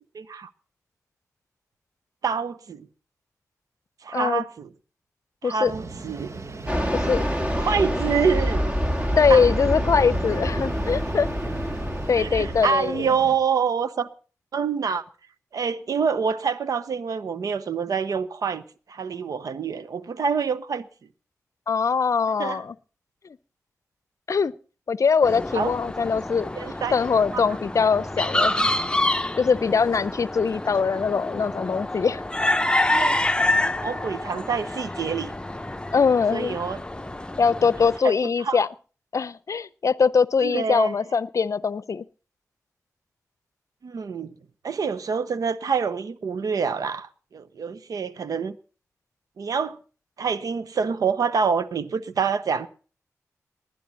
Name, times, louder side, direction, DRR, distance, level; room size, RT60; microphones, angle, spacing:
voice 1, 0.1-0.5 2.2-2.9 4.0-4.7 5.4-6.3 7.6-8.6 9.3-9.4 12.1-14.1 14.5-15.0 15.5-18.6 18.9-20.9 22.4-22.6 25.5-25.7 26.5-26.9 27.3-27.4 32.9-33.2 33.8-35.3 36.3-36.8 38.0-38.7 40.4-40.9 43.8-44.3 44.6-48.6 49.4-49.8 50.2-52.7, right 6 dB, 75° right, 0.8 m, -26 dB
voice 2, 4.1-4.4 5.4-5.7 6.9-7.2 9.2-11.3 12.1-13.1 21.7-22.7 24.3-24.5 24.9-26.5 26.9-28.7 29.4-32.2 35.9-36.6 37.4-38.7 39.1-42.1, left 5 dB, 60° left, 0.6 m, -22 dB
sound 1, 5.6-13.4, right 3 dB, 50° right, 1.4 m, -38 dB
Fixed-wing aircraft airplane, 6.7-12.6, equal, 25° right, 1.9 m, -26 dB
sound 2, 25.2-38.0, left 1 dB, 15° left, 0.8 m, -27 dB
19.5 x 10.0 x 4.2 m
cardioid pair, 40°, 6 cm